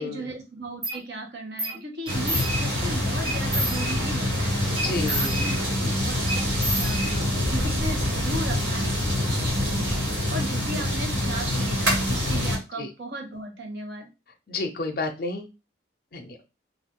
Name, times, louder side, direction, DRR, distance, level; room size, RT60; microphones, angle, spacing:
voice 1, 0.0-14.1, right 1 dB, 65° right, 2 dB, 0.8 m, -36 dB
sound 1, 0.8-1.0 1.6-1.8 2.1-2.9 3.2-4.3 4.8-5.9 6.3-7.5, right 1 dB, 25° right, 0.8 m, -31 dB
sound 2, 2.1-12.6, left 1 dB, 85° right, 1.6 m, -25 dB
voice 2, 4.7-5.3 12.8-12.9 14.5-15.5 16.1-16.4, left 3 dB, 50° left, 3 dB, 0.5 m, -30 dB
2.4 x 2.3 x 3.6 m, 0.27 s
head